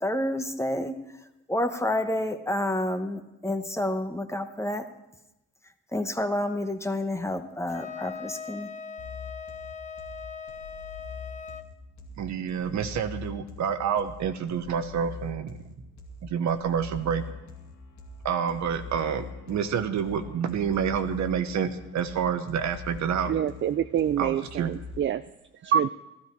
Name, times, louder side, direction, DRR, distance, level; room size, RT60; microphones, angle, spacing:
voice 1, 0.0-0.9 1.5-4.9 5.9-8.7, left 1 dB, 10° left, 7 dB, 1.1 m, -29 dB
Wind instrument woodwind instrument, 7.7-11.7, left 6 dB, 25° left, 0.8 m, -40 dB
sound 1, 9.0-25.0, left 5 dB, 70° left, 2.2 m, -43 dB
voice 2, 12.2-15.7 16.2-17.2 18.2-23.3 24.2-24.8, right 7 dB, 70° right, 9 dB, 1.1 m, -28 dB
voice 3, 23.3-25.2 25.6-25.9, right 9 dB, 40° right, 12 dB, 0.4 m, -26 dB
14.0 x 13.0 x 4.6 m, 0.93 s
cardioid pair, 90°, 30 cm